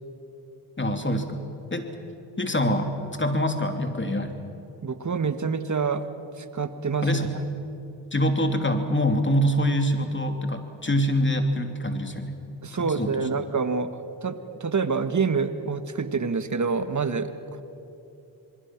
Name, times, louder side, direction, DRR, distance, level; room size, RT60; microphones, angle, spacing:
voice 1, 0.8-1.4 1.7-1.9 2.4-4.3 7.0-7.3 8.1-12.4 12.7-13.3, equal, 25° left, 6 dB, 3.0 m, -25 dB
voice 2, 4.8-6.0 6.4-7.1 12.6-17.6, right 5 dB, 35° right, 11 dB, 1.6 m, -27 dB
26.5 x 21.5 x 6.1 m, 2.9 s
supercardioid pair, 45°, 49 cm